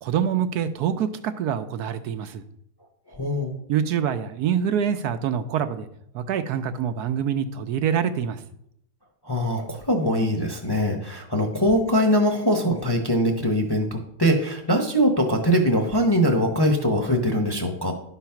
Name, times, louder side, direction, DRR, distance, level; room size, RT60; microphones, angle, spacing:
voice 1, 0.0-2.4 3.7-5.9 6.1-8.4, right 8 dB, 75° right, 9 dB, 1.2 m, -25 dB
voice 2, 3.1-3.5 9.2-17.9, equal, 20° left, 2 dB, 0.8 m, -22 dB
11.5 x 4.0 x 5.8 m, 0.73 s
omnidirectional pair, 1.8 m